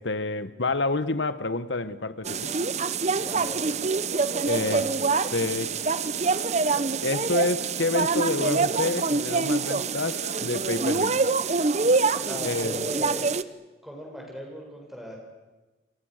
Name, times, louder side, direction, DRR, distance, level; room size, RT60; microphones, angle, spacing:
voice 1, 0.0-2.5 4.4-5.0 5.3-5.7 7.0-11.2 12.4-12.9, left 2 dB, 75° left, 1.4 m, -28 dB
sound 1, 2.2-13.4, right 4 dB, 35° right, 0.7 m, -25 dB
voice 2, 3.1-3.8 12.2-13.3 13.8-15.2, equal, ahead, 7.4 m, -38 dB
29.5 x 24.0 x 6.7 m
head